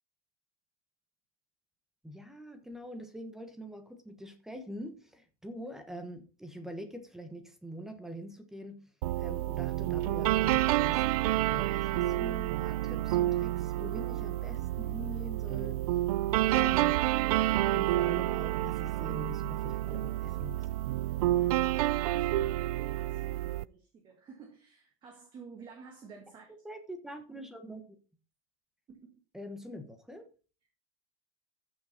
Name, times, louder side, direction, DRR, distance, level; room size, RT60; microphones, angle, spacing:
voice 1, 2.0-8.9 9.2-11.0 11.4-15.9 16.5-17.0 17.7-20.9 26.6-28.0 29.3-30.3, equal, ahead, 1.2 m, -44 dB
sound 1, 9.0-23.6, right 15 dB, 85° right, 0.4 m, -29 dB
voice 2, 21.5-26.6 28.9-29.1, right 5 dB, 25° right, 1.9 m, -52 dB
14.5 x 6.3 x 4.3 m
supercardioid pair, 165°, 18 cm